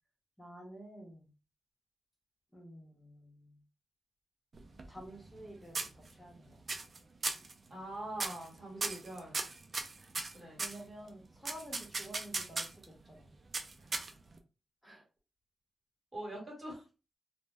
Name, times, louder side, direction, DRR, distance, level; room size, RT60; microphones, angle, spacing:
voice 1, 0.4-1.3 2.5-3.6 4.9-6.6 10.6-13.3 14.8-15.1, right 1 dB, 5° left, -1 dB, 1.0 m, -51 dB
sound 1, 4.5-5.4 5.7-6.3 6.7-7.0 7.2-7.5 8.1-8.5 8.8-10.8 11.4-12.8 13.5-14.4, right 3 dB, 40° right, 0.4 m, -37 dB
voice 2, 7.7-9.4 10.3-10.6 16.1-16.8, right 1 dB, 15° right, -3 dB, 1.5 m, -43 dB
2.6 x 2.1 x 3.3 m, 0.31 s
wide cardioid pair, 150°, 0 cm